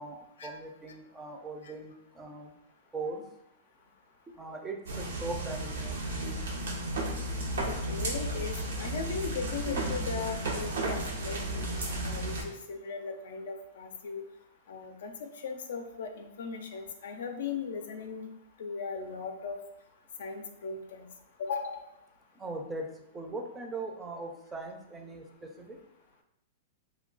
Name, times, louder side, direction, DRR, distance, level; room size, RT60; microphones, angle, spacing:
voice 1, 0.0-2.5 2.9-3.2 4.4-6.0 22.4-22.9 23.1-25.8, right 2 dB, 15° right, 3 dB, 0.4 m, -40 dB
sound 1, 4.9-12.4, right 1 dB, 90° right, 0.6 m, -33 dB
voice 2, 7.7-11.8 12.0-14.2 14.7-18.3 18.6-19.6 20.2-21.1 21.4-21.8, left 5 dB, 80° left, 4 dB, 0.4 m, -38 dB
2.2 x 2.2 x 3.8 m, 0.82 s
hypercardioid pair, 130°, 0 cm